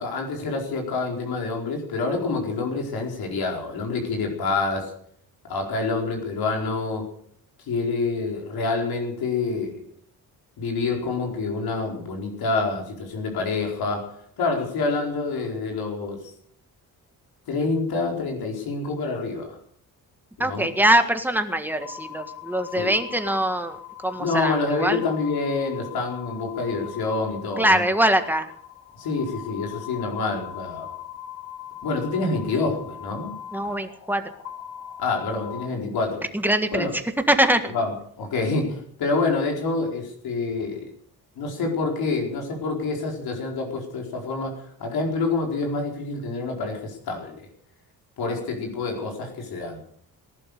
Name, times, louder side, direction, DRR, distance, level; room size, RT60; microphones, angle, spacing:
voice 1, 0.0-4.9 5.4-7.1 7.7-9.8 10.6-14.1 14.4-16.3 17.5-19.6 20.4-20.7 22.7-22.9 24.2-27.8 29.0-30.9 31.8-33.3 35.0-36.3 36.7-36.9 37.7-37.9 38.2-40.9 41.4-47.4 48.2-49.8, left 3 dB, 80° left, 1 dB, 4.7 m, -27 dB
voice 2, 20.4-25.0 27.6-28.5 33.5-34.2 36.3-37.0 37.3-37.7, right 1 dB, 5° right, 7 dB, 1.6 m, -23 dB
sound 1, 21.8-35.7, left 10 dB, 60° left, 2.7 m, -40 dB
18.5 x 11.5 x 6.8 m, 0.63 s
cardioid pair, 125°, 37 cm